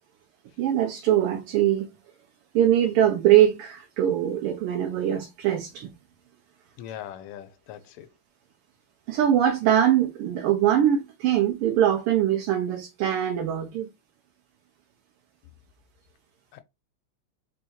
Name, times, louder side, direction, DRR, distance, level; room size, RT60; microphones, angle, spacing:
voice 1, 0.6-1.9 2.5-5.9 9.1-13.9, right 11 dB, 90° right, 1.6 m, -22 dB
voice 2, 6.8-8.1 16.5-16.6, left 11 dB, 90° left, 1.5 m, -40 dB
4.2 x 2.7 x 2.2 m
omnidirectional pair, 2.4 m